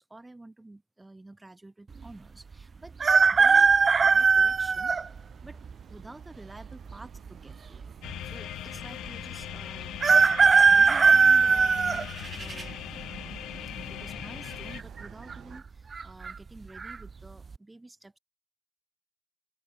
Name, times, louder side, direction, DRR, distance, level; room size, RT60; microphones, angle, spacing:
voice 1, 0.0-3.0 3.3-3.7 4.0-4.9 5.4-5.6 5.9-7.9 8.2-13.4 13.7-18.2, right 2 dB, 15° right, 3.2 m, -49 dB
sound 1, 3.0-5.0 5.7-5.8 6.9-7.5 7.8-7.9 8.1-8.2 10.0-12.6 13.1-13.6 14.7-15.0 15.3-15.4 15.9-16.3 16.8-17.0, right 5 dB, 35° right, 0.4 m, -20 dB
sound 2, 3.2-15.6, right 10 dB, 65° right, 4.8 m, -51 dB
sound 3, 8.0-14.8, left 13 dB, 85° left, 1.7 m, -40 dB
open air
cardioid pair, 90°, 0 cm